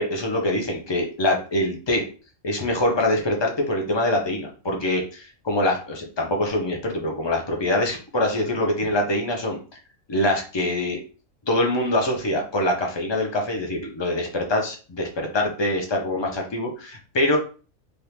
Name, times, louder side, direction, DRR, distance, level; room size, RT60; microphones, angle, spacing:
voice 1, 0.0-2.0 2.4-9.8 10.1-11.0 11.5-17.4, left 1 dB, 35° left, 2 dB, 0.4 m, -24 dB
3.4 x 2.5 x 2.9 m, 0.37 s
omnidirectional pair, 1.4 m